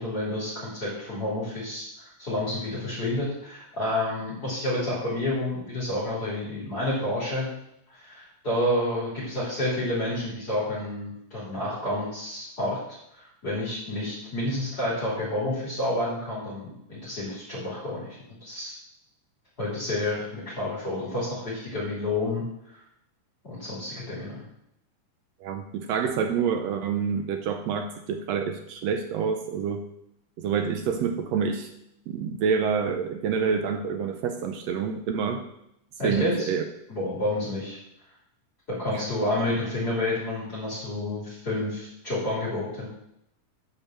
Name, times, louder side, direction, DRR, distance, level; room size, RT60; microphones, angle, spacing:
voice 1, 0.0-1.9 2.2-7.5 7.9-12.8 13.1-18.8 19.6-22.4 23.4-24.4 36.0-36.5 36.9-37.8 38.7-42.9, left 1 dB, 30° left, -8 dB, 3.4 m, -29 dB
voice 2, 25.4-29.8 30.4-31.7 32.1-35.4 36.0-36.6 38.9-39.0, right 6 dB, 80° right, 6 dB, 1.6 m, -27 dB
8.7 x 5.5 x 7.3 m, 0.79 s
omnidirectional pair, 3.7 m